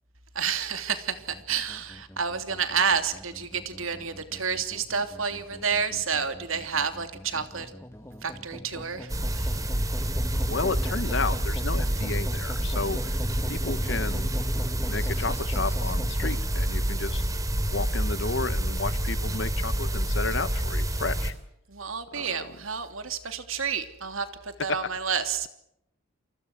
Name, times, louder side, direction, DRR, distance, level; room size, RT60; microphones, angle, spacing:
voice 1, 0.3-7.7 8.2-9.6 21.7-25.5, right 6 dB, 85° right, 9 dB, 3.0 m, -30 dB
sound 1, 1.2-16.4, equal, 10° left, 1.8 m, -41 dB
sound 2, 9.1-21.3, right 1 dB, 15° right, 3.0 m, -28 dB
voice 2, 10.5-13.2 13.5-14.4 14.8-17.2 17.7-21.3 22.1-22.5 24.7-24.9, left 4 dB, 60° left, 14 dB, 1.1 m, -32 dB
29.0 x 24.5 x 6.3 m, 0.79 s
head